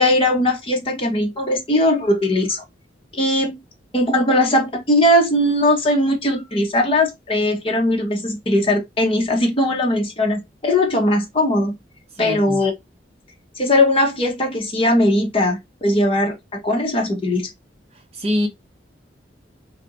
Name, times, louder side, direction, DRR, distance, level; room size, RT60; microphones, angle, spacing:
voice 1, 0.0-2.6 3.1-3.6 3.9-11.8 12.2-12.7 13.6-17.5, left 1 dB, 30° left, 1.0 m, -19 dB
voice 2, 12.2-12.6 18.1-18.5, left 1 dB, 35° right, 0.8 m, -23 dB
3.4 x 2.8 x 2.5 m
head